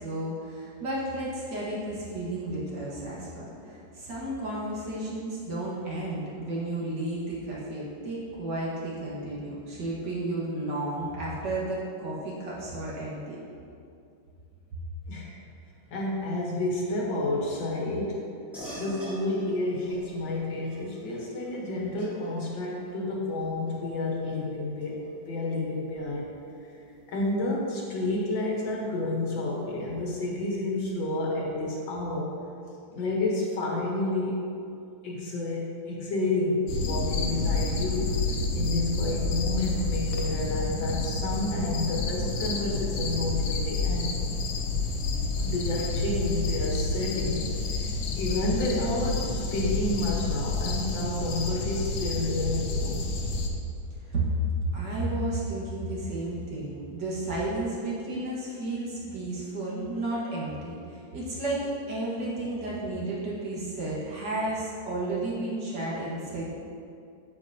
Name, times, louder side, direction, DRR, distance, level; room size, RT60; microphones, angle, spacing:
voice 1, 0.0-13.4 54.0-54.3 54.6-66.5, right 2 dB, 65° right, -7 dB, 2.3 m, -32 dB
voice 2, 15.9-18.2 18.7-26.3 27.1-32.3 32.9-34.5 35.0-44.1 45.4-47.9 48.2-53.1, left 2 dB, 70° left, -3 dB, 1.9 m, -30 dB
sound 1, 18.5-28.4, right 1 dB, ahead, 1.6 m, -47 dB
sound 2, 36.7-53.5, left 3 dB, 90° left, 1.5 m, -29 dB
8.4 x 7.6 x 2.8 m, 2.5 s
omnidirectional pair, 2.1 m